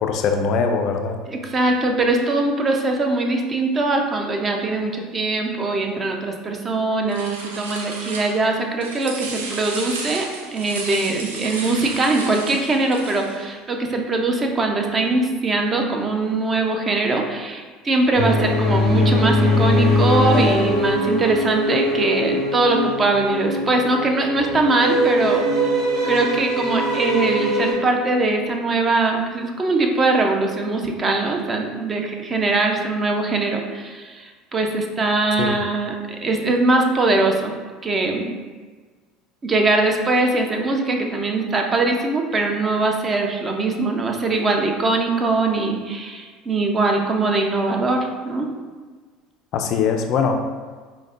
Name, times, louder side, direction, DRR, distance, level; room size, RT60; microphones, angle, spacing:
voice 1, 0.0-1.2 35.4-35.5 49.5-50.4, left 5 dB, 55° left, 4 dB, 0.3 m, -21 dB
voice 2, 1.3-10.3 10.5-25.7 26.0-36.0 36.2-37.5 37.8-38.3 39.4-48.5, right 2 dB, 30° right, 2 dB, 0.5 m, -21 dB
sound 1, 7.1-8.5 8.8-13.4, right 3 dB, 90° right, 0.4 m, -33 dB
sound 2, 18.1-27.7, left 1 dB, 55° right, 1.2 m, -21 dB
4.8 x 2.1 x 2.4 m, 1.4 s
hypercardioid pair, 80°, 0 cm